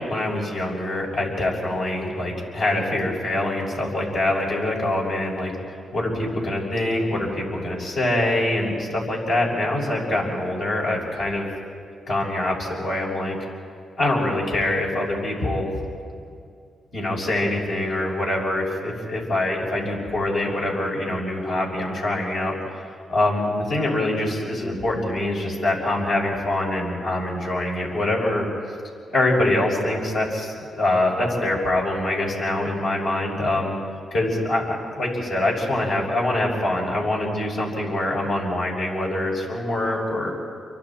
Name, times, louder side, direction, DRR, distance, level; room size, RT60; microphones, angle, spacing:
voice 1, 0.0-5.5 5.9-11.5 12.1-13.4 14.0-15.7 16.9-22.8 23.1-28.5 29.1-33.7 34.1-40.3, left 1 dB, 80° left, -4 dB, 6.5 m, -24 dB
29.0 x 24.5 x 4.5 m, 2.3 s
cardioid pair, 65°, 0 cm